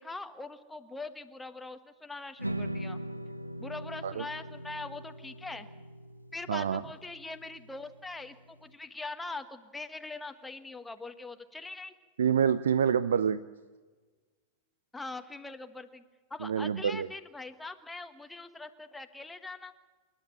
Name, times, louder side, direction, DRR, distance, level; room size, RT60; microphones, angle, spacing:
voice 1, 0.0-3.0 3.6-5.7 6.3-11.9 14.9-16.0 16.3-19.7, left 3 dB, 10° left, 8 dB, 1.4 m, -42 dB
sound 1, 2.4-8.7, right 1 dB, 85° right, 0.9 m, -41 dB
voice 2, 6.5-6.8 12.2-13.4 16.4-17.1, right 8 dB, 65° right, 16 dB, 0.5 m, -27 dB
27.5 x 12.0 x 9.2 m, 1.4 s
figure-of-eight pair, 90°, 0 cm